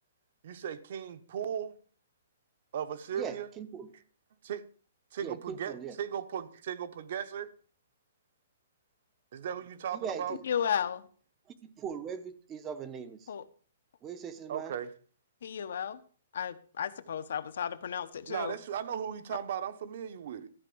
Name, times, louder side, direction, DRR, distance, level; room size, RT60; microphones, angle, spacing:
voice 1, 0.4-1.8 2.7-3.5 4.4-4.6 5.1-7.5 9.3-10.4 14.5-14.9 18.3-20.5, right 8 dB, 45° right, 0.9 m, -37 dB
voice 2, 3.2-3.9 5.2-6.0 9.9-10.4 11.6-13.2 14.0-14.7, right 7 dB, 15° right, 0.7 m, -40 dB
voice 3, 10.4-11.1 13.3-13.4 15.4-16.0 16.3-18.5, left 8 dB, 60° left, 0.9 m, -33 dB
13.5 x 4.7 x 7.8 m
hypercardioid pair, 170°, 0 cm